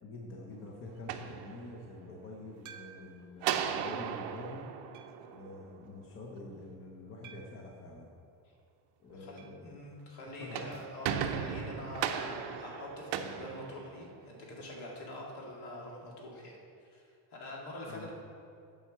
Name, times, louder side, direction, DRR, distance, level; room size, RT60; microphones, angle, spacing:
voice 1, 0.0-4.7 5.3-8.1 9.0-9.7 10.4-10.6 17.9-18.1, left 2 dB, 30° left, -1 dB, 0.8 m, -46 dB
sound 1, 0.9-2.1 3.4-5.9 10.3-14.4, right 8 dB, 75° right, 0.7 m, -37 dB
sound 2, 2.7-3.3 4.0-4.1 4.9-5.3 7.2-7.7 9.4-9.7 9.9-10.0 10.3-10.4 12.4-12.5, right 8 dB, 45° right, 0.7 m, -53 dB
voice 2, 9.1-17.0 17.3-18.1, left 1 dB, 60° left, -2 dB, 2.3 m, -45 dB
8.9 x 4.6 x 7.2 m, 2.4 s
cardioid pair, 170°, 44 cm